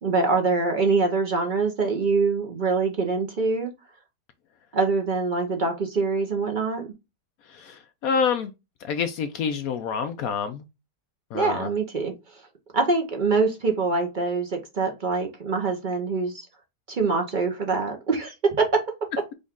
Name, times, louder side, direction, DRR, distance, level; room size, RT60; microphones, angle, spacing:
voice 1, 0.0-3.7 4.7-6.9 11.3-12.1 12.7-16.5 16.9-18.9, right 4 dB, 60° right, 0.5 m, -24 dB
voice 2, 7.5-8.5 8.8-10.6 11.3-11.7, left 6 dB, 70° left, 0.9 m, -27 dB
5.2 x 2.4 x 3.5 m
omnidirectional pair, 1.8 m